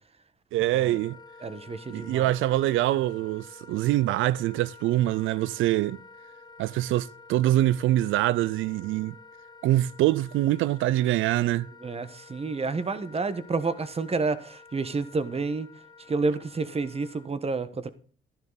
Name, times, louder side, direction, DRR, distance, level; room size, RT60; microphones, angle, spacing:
voice 1, 0.5-1.2 1.9-6.0 6.6-9.2 9.6-11.7, right 15 dB, 85° right, 0.4 m, -24 dB
Wind instrument woodwind instrument, 0.7-17.3, left 4 dB, 20° left, 1.3 m, -50 dB
voice 2, 1.4-2.4 11.8-15.7 16.1-17.9, right 4 dB, 30° right, 1.3 m, -29 dB
12.5 x 11.0 x 4.0 m
cardioid pair, 90°, 20 cm